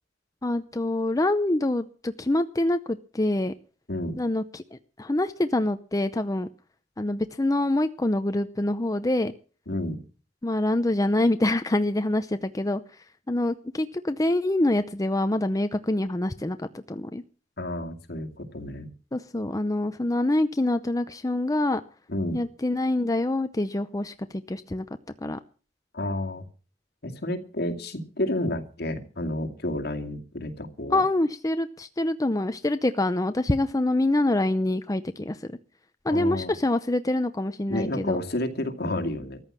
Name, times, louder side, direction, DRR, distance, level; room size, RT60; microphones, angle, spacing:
voice 1, 0.4-3.5 4.2-6.5 7.0-9.3 10.4-12.8 13.3-17.2 19.1-21.8 22.3-24.9 25.2-25.4 30.9-35.4 36.0-38.2, left 1 dB, 20° left, 10 dB, 0.7 m, -25 dB
voice 2, 9.7-10.0 17.6-18.9 22.1-22.4 25.9-26.4 27.0-31.0 36.1-36.5 37.7-39.4, left 1 dB, 60° left, 5 dB, 2.4 m, -30 dB
14.5 x 10.5 x 7.5 m, 0.39 s
head